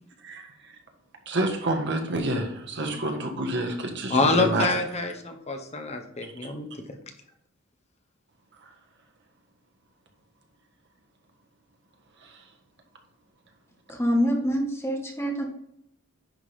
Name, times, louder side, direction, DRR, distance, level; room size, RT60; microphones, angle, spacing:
voice 1, 0.2-0.7 1.3-4.7 12.2-12.4, right 1 dB, 60° right, 3 dB, 1.6 m, -28 dB
voice 2, 4.1-6.7, left 3 dB, 30° left, 5 dB, 1.1 m, -26 dB
voice 3, 13.9-15.4, equal, 15° left, 1 dB, 1.6 m, -25 dB
10.5 x 3.7 x 5.0 m, 0.74 s
head